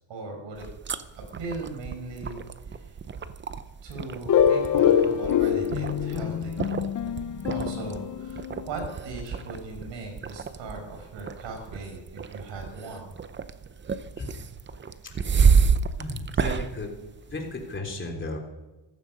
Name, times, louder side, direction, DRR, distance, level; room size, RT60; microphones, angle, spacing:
voice 1, 0.1-0.7 1.4-2.4 2.7-2.9 3.8-6.7 7.5-13.1, right 2 dB, 70° right, 3 dB, 5.6 m, -38 dB
sound 1, 0.5-17.8, right 6 dB, 25° right, 0.7 m, -30 dB
sound 2, 4.3-8.9, left 8 dB, 40° left, 0.9 m, -25 dB
voice 2, 16.0-16.9 17.3-18.4, left 2 dB, 25° left, 1 dB, 3.5 m, -34 dB
14.5 x 14.0 x 5.3 m, 1.2 s
cardioid pair, 115°, 46 cm